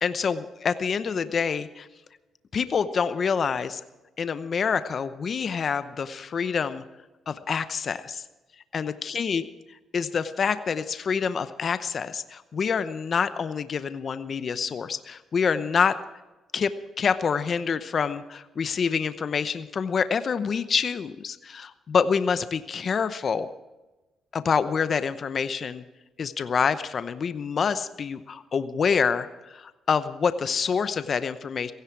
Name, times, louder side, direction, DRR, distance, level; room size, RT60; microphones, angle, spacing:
voice 1, 0.0-1.9 2.5-3.8 4.2-6.8 7.3-8.2 8.7-9.4 9.9-16.0 16.5-16.7 17.0-23.5 24.3-25.8 26.2-31.7, left 6 dB, 50° left, 12 dB, 0.8 m, -26 dB
16.5 x 16.5 x 4.7 m, 1.1 s
cardioid pair, 90°, 0 cm